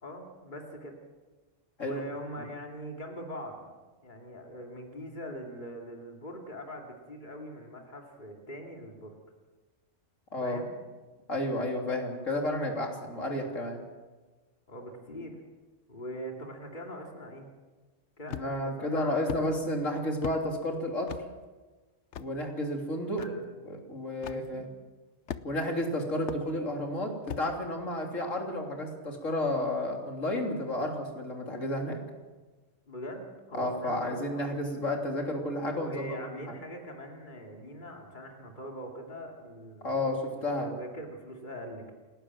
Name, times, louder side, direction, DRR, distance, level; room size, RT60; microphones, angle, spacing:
voice 1, 0.0-0.9 1.8-3.7 4.0-9.2 10.4-10.7 14.7-15.4 15.9-17.5 18.2-19.5 23.2-23.4 24.2-24.7 32.9-34.4 35.8-41.9, equal, 40° left, 1 dB, 2.9 m, -42 dB
voice 2, 11.3-13.8 18.3-21.1 22.2-23.2 23.7-24.7 25.4-32.0 33.5-36.2 36.5-36.6 39.8-40.7, left 1 dB, 85° left, 1 dB, 3.7 m, -31 dB
sound 1, 18.3-18.7 19.3-19.5 20.2-20.4 21.1-21.3 22.1-22.3 23.2-23.3 24.2-24.4 25.3-25.7 26.3-26.4 27.3-27.5, left 9 dB, 65° left, 1.1 m, -37 dB
28.5 x 12.5 x 7.6 m, 1.3 s
omnidirectional pair, 1.3 m